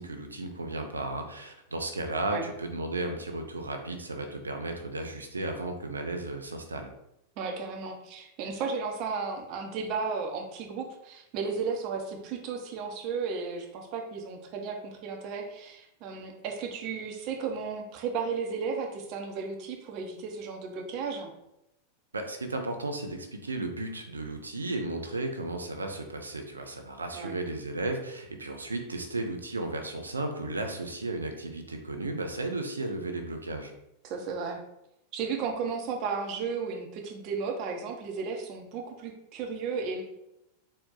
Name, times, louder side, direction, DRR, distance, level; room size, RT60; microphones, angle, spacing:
voice 1, 0.0-6.9 22.1-33.7, right 2 dB, 75° right, 5 dB, 0.6 m, -34 dB
voice 2, 7.4-21.3 27.1-27.3 34.0-34.6 35.1-40.0, right 5 dB, 40° right, 2 dB, 0.7 m, -34 dB
4.1 x 2.2 x 3.8 m, 0.82 s
figure-of-eight pair, 90°, 0 cm